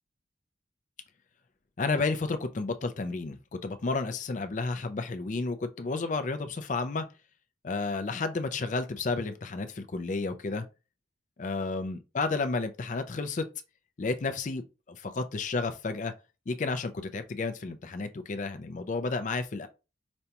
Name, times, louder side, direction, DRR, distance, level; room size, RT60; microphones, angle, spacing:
voice 1, 1.8-7.1 7.6-10.6 11.4-13.5 14.0-16.1 16.5-19.7, left 3 dB, 40° left, 0.4 m, -31 dB
5.1 x 2.3 x 2.8 m
head